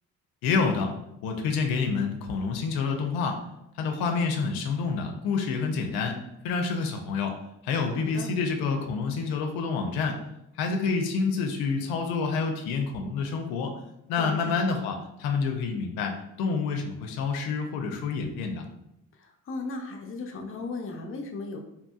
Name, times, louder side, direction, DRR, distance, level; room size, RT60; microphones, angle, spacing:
voice 1, 0.4-0.9 1.2-3.4 3.8-6.2 6.4-7.3 7.6-10.2 10.6-13.7 14.1-18.6, left 4 dB, 85° left, 3 dB, 0.5 m, -28 dB
voice 2, 14.2-14.6 19.2-21.6, left 3 dB, 35° left, 2 dB, 0.5 m, -36 dB
2.8 x 2.6 x 2.3 m, 0.83 s
supercardioid pair, 70°, 36 cm